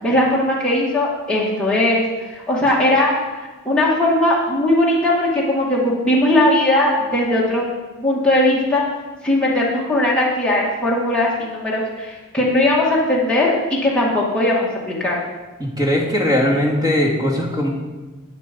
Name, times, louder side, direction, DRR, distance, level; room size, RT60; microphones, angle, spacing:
voice 1, 0.0-7.6 8.0-8.8 9.2-15.2, left 1 dB, 5° left, -6 dB, 2.2 m, -19 dB
voice 2, 15.6-17.7, left 1 dB, 20° right, -2 dB, 2.6 m, -19 dB
12.5 x 9.3 x 5.4 m, 1.2 s
head